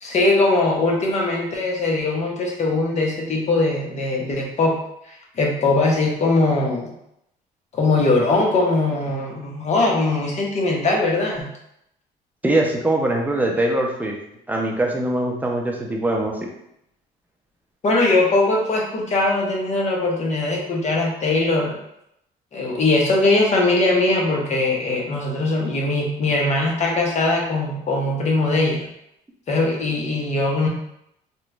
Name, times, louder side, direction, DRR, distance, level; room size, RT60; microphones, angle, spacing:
voice 1, 0.0-4.8 5.1-6.9 7.8-11.5 17.8-21.8 22.5-28.9 29.5-30.7, left 2 dB, 40° left, -1 dB, 0.9 m, -21 dB
voice 2, 12.4-14.1 14.5-16.4, right 1 dB, 10° right, 0 dB, 0.6 m, -22 dB
3.0 x 2.4 x 3.2 m, 0.77 s
cardioid pair, 110°, 17 cm